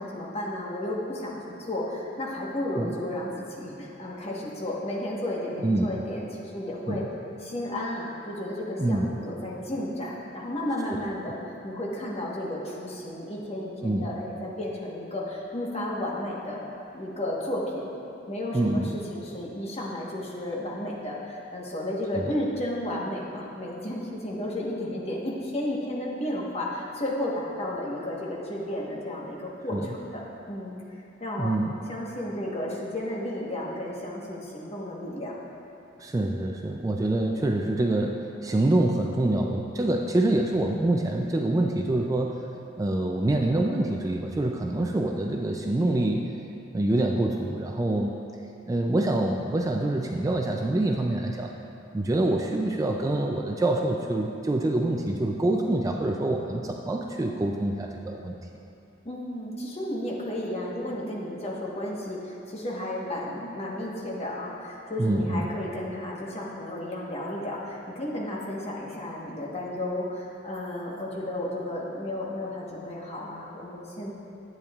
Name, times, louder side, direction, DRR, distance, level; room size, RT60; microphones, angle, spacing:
voice 1, 0.0-7.0 7.4-11.4 11.6-16.6 16.9-17.9 18.3-18.8 19.1-30.7 31.2-31.6 31.9-35.4 59.0-74.1, left 1 dB, 35° left, -4 dB, 1.2 m, -33 dB
voice 2, 5.6-6.0 6.9-7.1 8.8-9.1 10.9-11.0 13.8-14.1 18.5-19.0 29.7-29.9 31.4-31.8 36.0-42.4 42.8-46.3 46.7-48.1 48.7-51.5 51.9-58.3 65.0-65.5, right 1 dB, 20° right, 1 dB, 0.3 m, -26 dB
11.0 x 8.5 x 2.4 m, 2.7 s
head